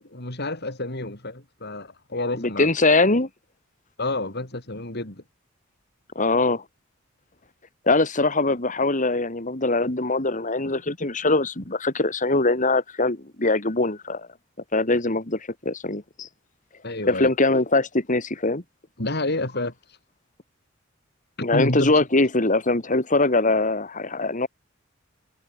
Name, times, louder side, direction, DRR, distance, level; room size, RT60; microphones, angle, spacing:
voice 1, 0.0-2.7 4.0-5.2 16.8-17.3 19.0-19.7 21.4-21.9, left 2 dB, 55° left, 5.2 m, -29 dB
voice 2, 2.4-3.3 6.1-6.6 7.9-14.3 14.7-16.3 17.1-18.6 21.4-24.5, left 2 dB, 40° left, 2.7 m, -22 dB
head